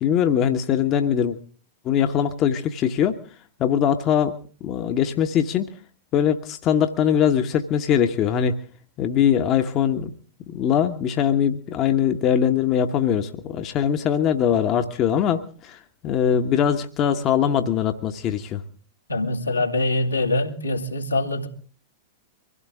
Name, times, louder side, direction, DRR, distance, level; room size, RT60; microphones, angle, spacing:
voice 1, 0.0-1.4 1.8-3.2 3.6-4.4 4.6-5.7 6.1-8.6 9.0-10.1 10.5-18.6, left 8 dB, 35° left, 1.2 m, -21 dB
voice 2, 19.1-21.5, left 2 dB, 85° left, 2.5 m, -24 dB
24.5 x 16.0 x 3.7 m
figure-of-eight pair, 95°, 0 cm